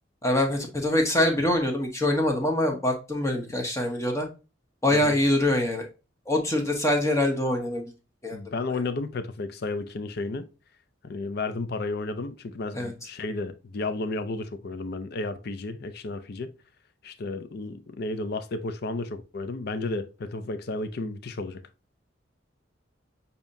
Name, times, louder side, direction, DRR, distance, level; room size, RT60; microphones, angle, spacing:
voice 1, 0.2-4.3 4.8-5.8 6.3-7.9 8.2-8.4 12.7-12.9, left 1 dB, 15° left, 1.0 m, -24 dB
voice 2, 8.3-10.5 11.1-16.5 17.0-21.6, left 3 dB, 55° left, 0.5 m, -32 dB
6.9 x 2.8 x 2.6 m
head